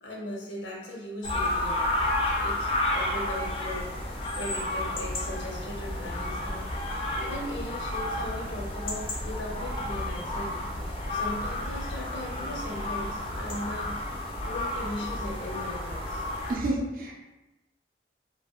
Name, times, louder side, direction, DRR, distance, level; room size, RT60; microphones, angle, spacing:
voice 1, 0.0-1.9 2.4-2.7 2.9-3.9 4.4-10.5 11.1-14.1 14.4-16.2, left 1 dB, 80° left, -2 dB, 0.6 m, -38 dB
sound 1, 1.2-16.5, left 1 dB, 30° left, 0.3 m, -31 dB
voice 2, 16.5-17.2, right 1 dB, 50° right, -1 dB, 0.4 m, -29 dB
2.7 x 2.1 x 2.3 m, 1.1 s
head